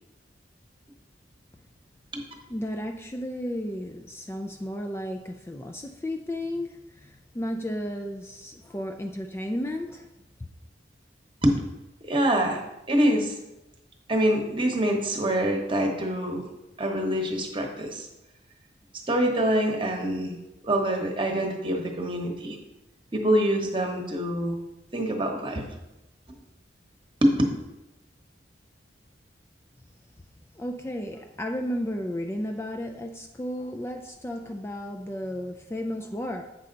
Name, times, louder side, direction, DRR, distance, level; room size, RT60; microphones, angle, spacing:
voice 1, 2.5-10.1 30.5-36.4, equal, 15° left, 3 dB, 0.3 m, -33 dB
voice 2, 12.1-12.6 12.9-13.3 14.1-16.4 16.8-18.1 19.1-20.3 20.6-22.6 23.1-24.6 24.9-25.7 27.2-27.3, right 1 dB, 30° right, 3 dB, 1.0 m, -25 dB
8.3 x 5.5 x 3.8 m, 0.99 s
head